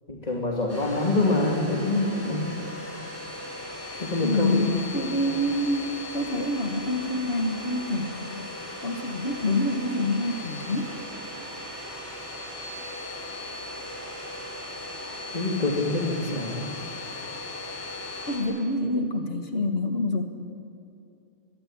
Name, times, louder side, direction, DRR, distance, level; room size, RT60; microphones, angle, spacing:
voice 1, 0.1-2.6 4.0-4.8 15.3-16.8, left 2 dB, 30° left, -1 dB, 2.6 m, -26 dB
Domestic sounds home sounds, 0.7-18.4, left 1 dB, 10° left, 5.7 m, -38 dB
voice 2, 4.2-8.4 8.8-10.9 18.3-20.2, left 1 dB, 50° left, 6 dB, 2.1 m, -27 dB
23.5 x 22.5 x 9.0 m, 2.6 s
omnidirectional pair, 1.3 m